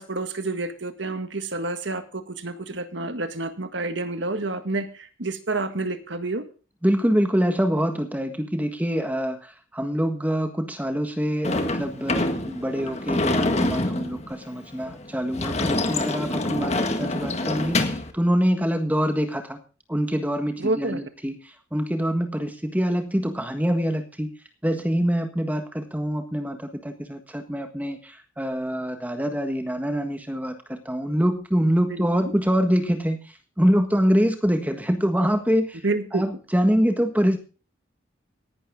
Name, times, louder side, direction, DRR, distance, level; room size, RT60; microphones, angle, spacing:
voice 1, 0.0-6.4 20.6-21.1 31.9-32.3 35.8-36.2, right 2 dB, 75° right, 9 dB, 1.8 m, -29 dB
voice 2, 6.8-19.6 19.9-24.3 24.6-33.2 33.6-35.8 36.1-37.4, equal, 10° right, 6 dB, 1.5 m, -25 dB
Sliding door / Slam, 11.4-18.1, left 2 dB, 35° left, 1.8 m, -26 dB
17.5 x 11.5 x 3.7 m, 0.36 s
head